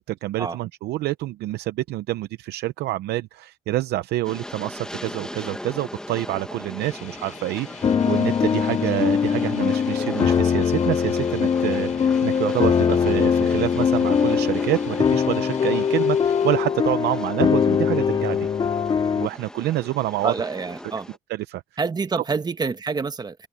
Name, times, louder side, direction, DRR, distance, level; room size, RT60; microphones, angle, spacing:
voice 1, 0.1-18.5 19.2-20.3 21.3-21.6, right 16 dB, 75° right, 0.7 m, -27 dB
Train, 4.2-21.2, left 1 dB, 5° left, 1.7 m, -39 dB
sound 1, 6.8-16.6, left 8 dB, 45° left, 4.5 m, -43 dB
sound 2, 7.8-19.3, left 7 dB, 30° left, 0.5 m, -21 dB
voice 2, 20.2-21.1 21.8-23.5, right 4 dB, 25° right, 1.3 m, -27 dB
open air
cardioid pair, 110°, 17 cm